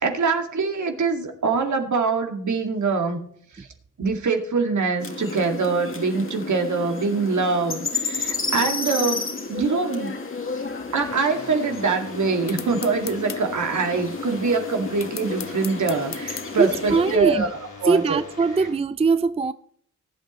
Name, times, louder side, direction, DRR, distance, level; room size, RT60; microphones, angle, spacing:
voice 1, 0.0-3.2 3.5-3.7 4.0-9.2 9.5-10.2 10.9-17.5 17.8-18.2 18.6-18.7, right 4 dB, 65° right, 2.2 m, -24 dB
sound 1, 5.0-17.2, left 3 dB, 40° left, 2.1 m, -32 dB
sound 2, 11.0-18.7, left 4 dB, 85° left, 6.3 m, -42 dB
sound 3, 12.5-13.4 15.0-16.5, left 8 dB, 60° left, 0.8 m, -36 dB
voice 2, 16.6-17.4 17.8-19.5, right 4 dB, 20° right, 0.4 m, -21 dB
19.5 x 8.5 x 3.1 m
cardioid pair, 70°, 31 cm